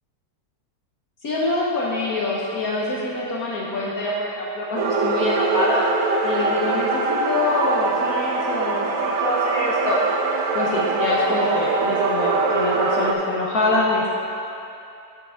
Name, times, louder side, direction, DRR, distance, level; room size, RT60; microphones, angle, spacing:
voice 1, 1.2-5.8 6.2-10.0 10.5-14.1, left 2 dB, 55° left, -5 dB, 1.3 m, -25 dB
sound 1, 4.8-13.1, right 4 dB, 70° right, 0.8 m, -23 dB
10.5 x 5.8 x 3.6 m, 2.7 s
omnidirectional pair, 2.0 m